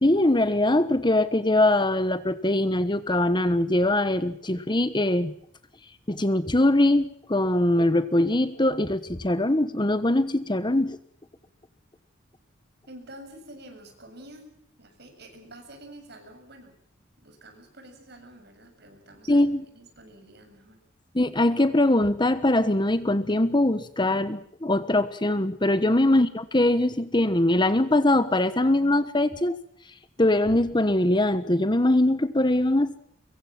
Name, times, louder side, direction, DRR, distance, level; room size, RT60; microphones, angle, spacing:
voice 1, 0.0-5.3 6.1-11.0 19.3-19.6 21.1-29.6 30.2-33.0, left 1 dB, 25° left, 13 dB, 1.2 m, -22 dB
voice 2, 12.9-14.5 14.8-16.8 17.2-20.8, right 1 dB, 55° right, 5 dB, 7.4 m, -48 dB
25.0 x 23.0 x 6.0 m, 0.70 s
head